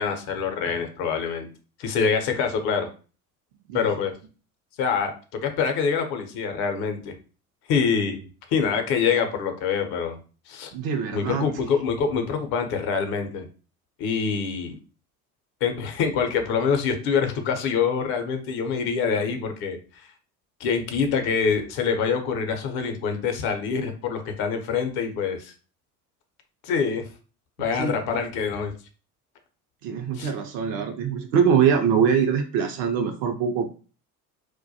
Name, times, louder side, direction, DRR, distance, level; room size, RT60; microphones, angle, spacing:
voice 1, 0.0-1.5 1.8-2.9 3.7-4.1 4.8-7.1 7.7-10.2 10.5-10.7 11.1-13.5 14.0-14.8 15.6-20.1 20.6-25.5 26.6-27.0 27.6-28.7 30.1-30.3, left 6 dB, 55° left, 6 dB, 0.7 m, -25 dB
voice 2, 10.7-11.5 27.7-28.0 29.8-33.7, right 7 dB, 50° right, 4 dB, 0.5 m, -23 dB
2.2 x 2.1 x 2.6 m, 0.36 s
hypercardioid pair, 70°, 45 cm